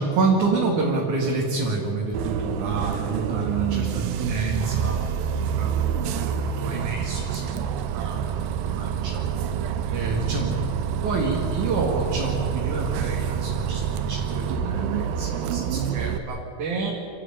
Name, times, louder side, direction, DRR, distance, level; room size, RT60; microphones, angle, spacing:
voice 1, 0.0-5.7 6.1-8.3 8.8-9.3 9.9-10.6 11.0-16.9, right 3 dB, 60° right, -2 dB, 3.5 m, -28 dB
Bus, 2.1-16.2, right 8 dB, 85° right, 2.8 m, -27 dB
29.5 x 13.5 x 9.0 m, 3.0 s
omnidirectional pair, 4.2 m